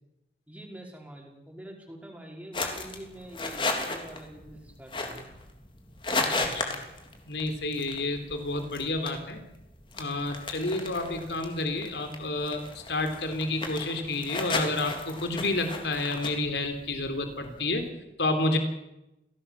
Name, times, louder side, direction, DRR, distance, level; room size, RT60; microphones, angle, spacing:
voice 1, 0.5-5.3, right 1 dB, 10° right, 0 dB, 5.1 m, -45 dB
sound 1, 2.5-17.9, left 3 dB, 30° left, 3.4 m, -36 dB
voice 2, 6.3-6.8 7.3-9.4 9.9-17.9 18.2-18.6, left 2 dB, 75° left, 6 dB, 3.6 m, -30 dB
26.5 x 18.0 x 7.2 m, 0.89 s
head